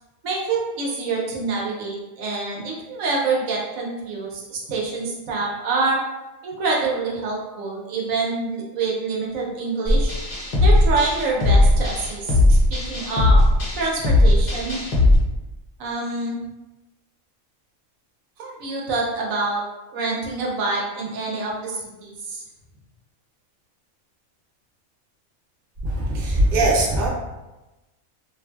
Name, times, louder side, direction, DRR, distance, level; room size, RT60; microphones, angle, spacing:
voice 1, 0.2-6.0 6.4-10.1 10.6-13.4 13.7-14.8 15.8-16.4 18.4-19.6 19.9-22.4, right 3 dB, 75° right, -3 dB, 1.1 m, -26 dB
sound 1, 9.9-15.2, left 1 dB, 45° left, 0.7 m, -17 dB
voice 2, 25.9-27.1, right 1 dB, 50° right, -3 dB, 0.6 m, -20 dB
3.3 x 2.5 x 2.3 m, 1.0 s
omnidirectional pair, 1.4 m